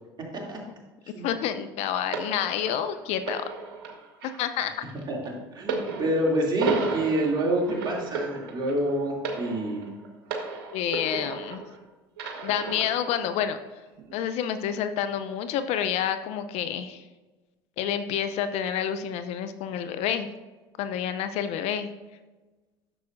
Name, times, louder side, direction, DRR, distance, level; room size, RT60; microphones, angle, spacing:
voice 1, 1.2-3.4 4.2-4.7 10.7-11.6 12.4-13.6 14.1-17.0 17.8-20.3 20.8-21.9, left 9 dB, 60° left, 10 dB, 0.6 m, -28 dB
sound 1, 2.1-11.8 12.2-13.2 14.0-14.1, right 4 dB, 75° right, 1.3 m, -34 dB
voice 2, 5.5-9.9, right 1 dB, 40° right, -2 dB, 2.7 m, -27 dB
11.0 x 6.9 x 2.6 m, 1.2 s
hypercardioid pair, 70°, 12 cm